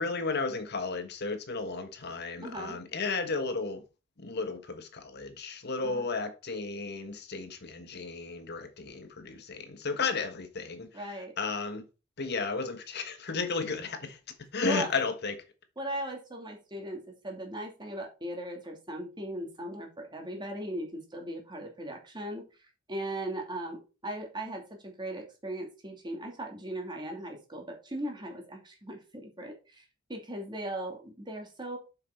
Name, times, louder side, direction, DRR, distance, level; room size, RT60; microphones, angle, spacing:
voice 1, 0.0-3.8 4.2-10.9 11.4-11.8 12.2-14.2 14.5-15.3, left 4 dB, 55° left, 1.5 m, -33 dB
voice 2, 2.4-2.8 5.8-6.1 10.9-11.3 14.7-14.9 15.8-22.5 22.9-31.8, right 1 dB, 20° right, 2.6 m, -38 dB
7.3 x 6.0 x 4.5 m
head